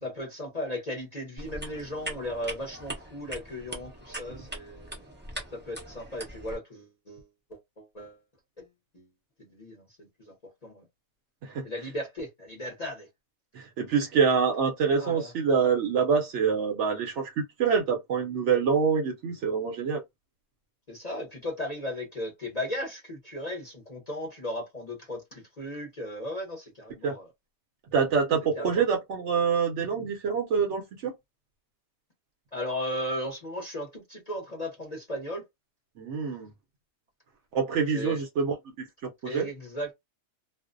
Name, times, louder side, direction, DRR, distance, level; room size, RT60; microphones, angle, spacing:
voice 1, 0.0-5.1 5.5-8.2 8.6-8.7 8.9-9.0 9.4-10.3 10.6-10.8 11.6-13.1 15.0-15.3 20.9-27.3 28.5-28.8 32.5-35.4 37.8-38.2 39.2-39.9, left 1 dB, 40° left, 0.6 m, -36 dB
sound 1, 1.4-6.6, right 1 dB, 15° right, 0.4 m, -41 dB
voice 2, 13.5-20.0 27.0-27.2 27.9-31.1 36.0-36.5 37.5-38.9 39.2-39.5, right 6 dB, 65° right, 0.8 m, -26 dB
2.5 x 2.0 x 2.4 m
omnidirectional pair, 1.5 m